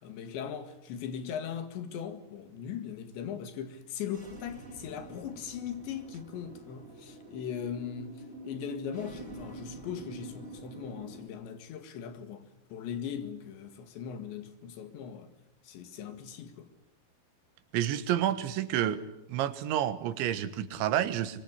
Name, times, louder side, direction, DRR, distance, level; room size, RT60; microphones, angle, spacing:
voice 1, 0.0-12.4 12.7-15.3 15.6-16.7, left 8 dB, 80° left, 4.2 m, -39 dB
sound 1, 4.1-11.2, right 2 dB, 15° right, 3.6 m, -46 dB
voice 2, 17.7-19.0 19.3-21.4, right 11 dB, 90° right, 3.7 m, -29 dB
24.5 x 24.0 x 9.7 m
omnidirectional pair, 5.1 m